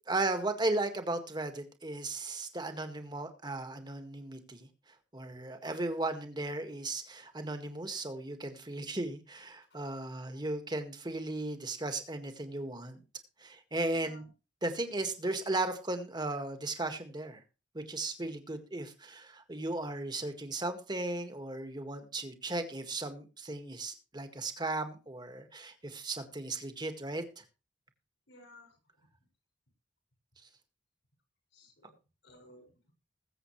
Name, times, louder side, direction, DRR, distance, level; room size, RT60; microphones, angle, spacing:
voice 1, 0.1-4.7 5.1-13.0 13.4-14.3 14.6-17.4 17.7-27.4, right 2 dB, 25° right, 1.8 m, -36 dB
voice 2, 13.9-14.3 28.3-28.7 31.5-32.0 32.2-32.9, left 1 dB, 80° left, 6.7 m, -57 dB
21.0 x 7.8 x 3.2 m
head